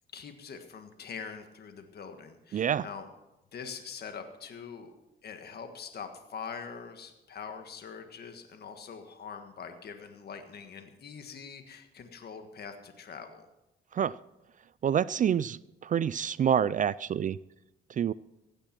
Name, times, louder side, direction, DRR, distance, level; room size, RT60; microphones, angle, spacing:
voice 1, 0.1-3.1 3.5-4.9 5.2-13.5, left 6 dB, 55° left, 6 dB, 1.6 m, -43 dB
voice 2, 2.5-2.9 13.9-14.2 14.8-17.4 17.9-18.1, right 8 dB, 40° right, 19 dB, 0.4 m, -27 dB
16.0 x 9.0 x 6.0 m, 0.94 s
cardioid pair, 90°, 20 cm